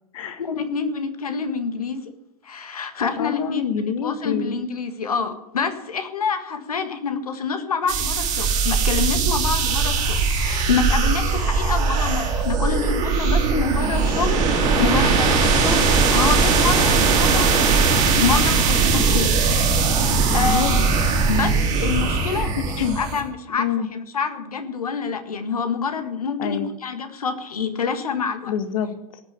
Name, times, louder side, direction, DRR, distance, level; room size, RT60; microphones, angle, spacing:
voice 1, 0.4-2.1 2.4-17.9 18.1-19.9 20.3-20.8 21.3-22.5 23.0-28.5, left 5 dB, 80° left, 8 dB, 1.7 m, -27 dB
voice 2, 3.2-4.5 20.3-20.8 22.3-23.0 23.6-23.9 26.4-26.7 28.5-29.2, left 7 dB, 65° left, 9 dB, 1.8 m, -27 dB
sound 1, 7.9-23.2, right 4 dB, 50° right, 4.3 m, -20 dB
17.5 x 6.6 x 8.2 m, 0.81 s
figure-of-eight pair, 85°, 19 cm